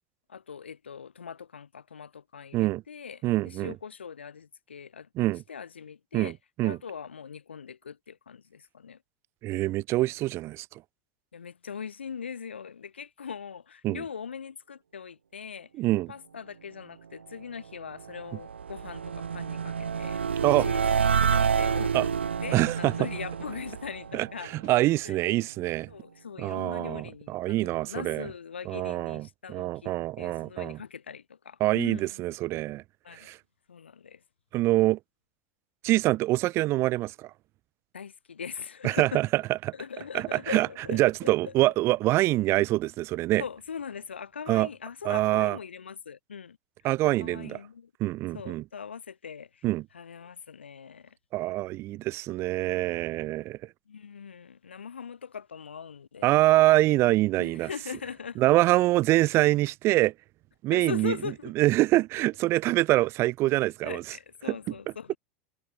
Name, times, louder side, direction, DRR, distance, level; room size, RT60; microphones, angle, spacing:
voice 1, 0.3-5.1 5.5-6.4 6.6-9.0 11.3-15.7 16.1-21.0 21.3-25.3 25.9-32.2 33.0-33.3 33.7-34.2 37.9-39.2 39.7-41.5 43.4-46.6 47.0-47.9 48.3-49.7 49.9-51.2 53.9-56.3 57.4-58.4 60.7-61.5 63.8-65.2, left 6 dB, 85° left, 2.2 m, -41 dB
voice 2, 3.2-3.7 5.2-5.4 6.1-6.3 6.6-6.8 9.4-10.6 13.8-14.0 15.8-16.1 20.4-20.7 21.9-22.0 22.5-22.9 24.1-24.3 24.6-25.9 26.4-28.3 28.7-30.8 31.6-32.8 33.2-33.4 34.5-35.0 35.8-37.3 38.8-39.4 40.1-40.7 40.9-43.4 44.5-44.7 45.0-45.6 46.8-47.6 48.0-48.6 49.6-49.8 51.3-53.6 56.2-57.7 58.4-60.1 60.6-61.1 61.6-64.0, right 17 dB, 50° right, 1.1 m, -25 dB
sound 1, 17.7-24.9, right 6 dB, 90° right, 1.5 m, -29 dB
hypercardioid pair, 85°, 6 cm